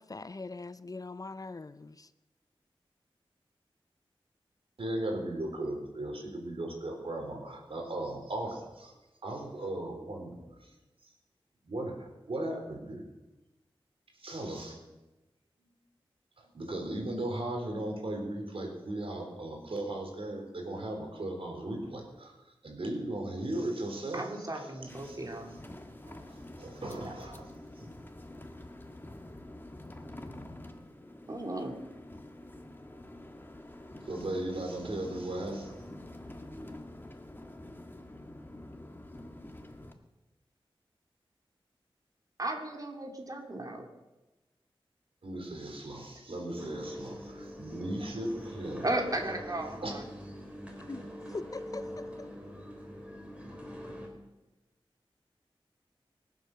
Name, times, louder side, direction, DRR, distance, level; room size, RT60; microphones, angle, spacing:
voice 1, 0.0-2.1 50.9-51.0 51.3-52.3, left 3 dB, 40° left, 0.5 m, -42 dB
voice 2, 4.8-8.9 9.2-10.7 11.6-13.0 14.2-14.8 16.4-22.4 22.6-24.2 24.5-24.7 25.0-25.2 26.1-27.5 27.8-27.9 34.1-35.7 45.2-48.8 49.8-49.9, right 1 dB, 70° right, 4.1 m, -37 dB
voice 3, 24.1-25.5 27.0-27.1 31.3-31.8 42.4-43.9 46.5-46.8 48.8-50.0, right 2 dB, 40° right, 2.9 m, -35 dB
sound 1, 24.9-39.9, left 1 dB, 20° left, 1.7 m, -47 dB
sound 2, 46.6-54.1, equal, 10° right, 4.0 m, -43 dB
24.0 x 8.1 x 6.7 m
wide cardioid pair, 65°, 10 cm